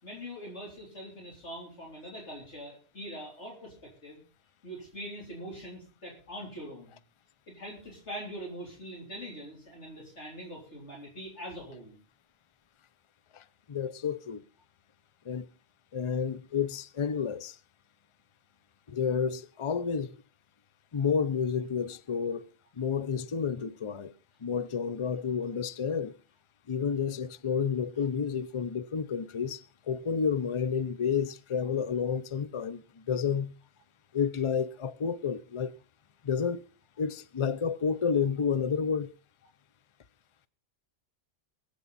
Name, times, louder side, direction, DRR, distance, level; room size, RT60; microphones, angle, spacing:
voice 1, 0.0-3.7 4.0-4.2 4.6-6.9 7.5-11.9, equal, 75° left, 4.1 m, -43 dB
voice 2, 13.3-14.4 15.3-15.5 15.9-17.6 18.9-20.2 20.9-22.5 22.8-24.1 24.4-26.1 26.7-33.5 34.1-35.7 36.2-36.6 37.0-39.1, left 6 dB, 35° left, 0.6 m, -30 dB
22.5 x 8.4 x 4.1 m
omnidirectional pair, 1.2 m